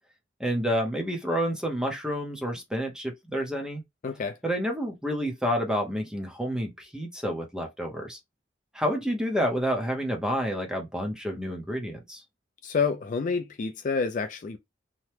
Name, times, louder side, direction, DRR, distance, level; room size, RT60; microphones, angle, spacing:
voice 1, 0.4-3.8 4.4-8.2 8.7-12.2, equal, 5° right, 0.6 m, -29 dB
voice 2, 4.0-4.4 12.6-14.6, left 5 dB, 40° left, 0.3 m, -28 dB
2.9 x 2.1 x 3.1 m
head